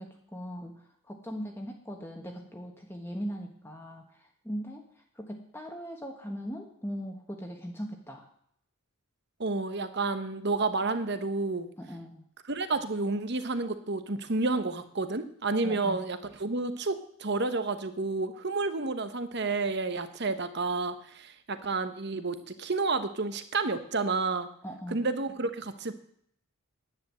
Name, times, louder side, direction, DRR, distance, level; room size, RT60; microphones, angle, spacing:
voice 1, 0.0-4.8 5.1-8.2 11.8-12.2 15.6-16.0 24.6-25.0, equal, 10° left, 1 dB, 1.4 m, -39 dB
voice 2, 9.4-11.7 12.5-24.5 24.9-25.9, right 3 dB, 50° right, 10 dB, 1.1 m, -30 dB
10.5 x 10.0 x 7.6 m, 0.67 s
head